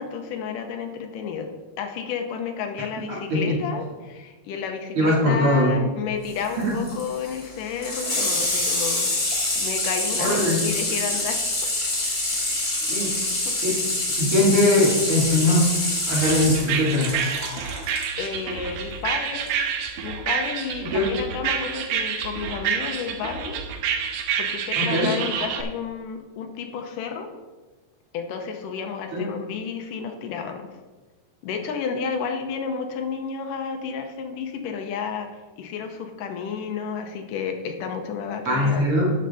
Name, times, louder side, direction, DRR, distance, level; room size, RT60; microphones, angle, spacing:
voice 1, 0.0-1.5 1.8-9.1 9.6-11.4 13.5-13.6 18.2-19.5 20.0-23.6 24.4-27.3 28.1-30.7 31.4-35.3 35.6-38.9, left 6 dB, 85° left, 5 dB, 2.5 m, -31 dB
voice 2, 5.0-5.7 6.6-6.7 10.2-10.6 12.9-13.1 13.6-13.8 14.2-15.7 16.1-17.1 20.9-21.1 24.8-25.1 29.1-29.2 38.5-39.1, left 1 dB, 45° right, -4 dB, 2.8 m, -20 dB
Water tap faucet / Sink (filling or washing), 6.3-18.1 19.4-19.5, left 2 dB, 25° left, 1.8 m, -26 dB
sound 1, 16.1-25.6, right 7 dB, 75° right, 2.0 m, -28 dB
11.0 x 6.6 x 4.1 m, 1.3 s
omnidirectional pair, 3.7 m